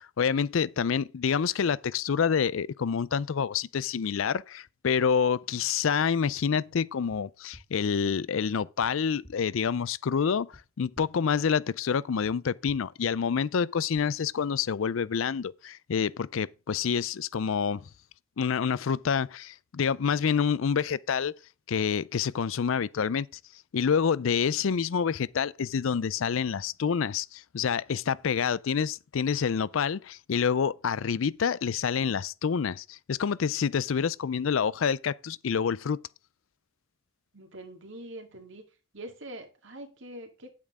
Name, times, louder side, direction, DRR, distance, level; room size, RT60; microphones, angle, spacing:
voice 1, 0.0-17.8 18.4-21.3 21.7-23.3 23.7-36.0, left 6 dB, 70° left, 0.4 m, -27 dB
sound 1, 7.5-7.6 8.8-8.9 9.2-9.3 10.5-10.6 10.9-11.0 12.2-12.3 12.7-12.8 13.9-14.0, equal, 15° left, 1.6 m, -50 dB
voice 2, 37.3-38.6 38.9-40.5, right 1 dB, 60° right, 2.2 m, -44 dB
9.6 x 8.5 x 3.6 m
head